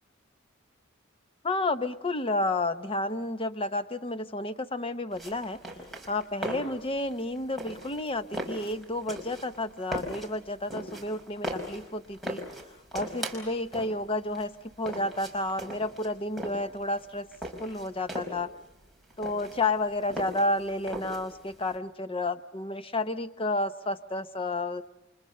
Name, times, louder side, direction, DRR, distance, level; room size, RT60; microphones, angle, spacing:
voice 1, 1.4-5.6 6.1-12.4 12.9-14.5 14.8-17.3 17.6-18.5 19.2-24.8, left 2 dB, 25° left, 11 dB, 0.9 m, -31 dB
sound 1, 5.1-21.7, right 1 dB, ahead, 5.1 m, -39 dB
29.5 x 25.0 x 6.7 m, 0.97 s
head